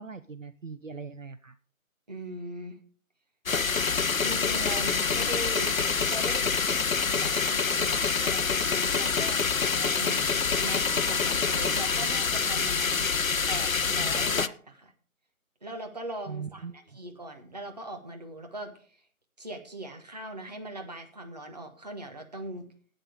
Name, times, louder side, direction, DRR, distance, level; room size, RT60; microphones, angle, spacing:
voice 1, 0.0-1.5 16.3-16.7, right 5 dB, 60° right, 12 dB, 0.7 m, -40 dB
voice 2, 2.1-2.7 4.2-6.4 7.1-9.4 9.9-13.1 13.5-14.9 15.6-18.7 19.4-22.6, right 1 dB, 30° right, 4 dB, 1.4 m, -40 dB
sound 1, 3.5-14.5, left 5 dB, 70° left, 0.7 m, -26 dB
11.5 x 8.9 x 5.0 m, 0.43 s
figure-of-eight pair, 160°, 43 cm